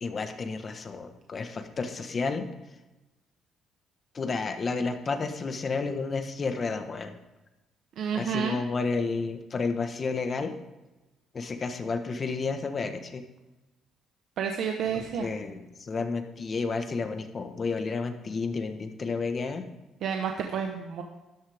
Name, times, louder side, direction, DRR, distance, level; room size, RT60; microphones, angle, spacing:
voice 1, 0.0-2.5 4.1-7.1 8.1-10.5 11.3-13.2 14.9-19.7, left 4 dB, 30° left, 7 dB, 1.3 m, -31 dB
voice 2, 8.0-8.6 14.4-15.3 20.0-21.0, right 7 dB, 65° right, 4 dB, 1.1 m, -30 dB
13.0 x 11.5 x 3.6 m, 1.1 s
cardioid pair, 130°, 0 cm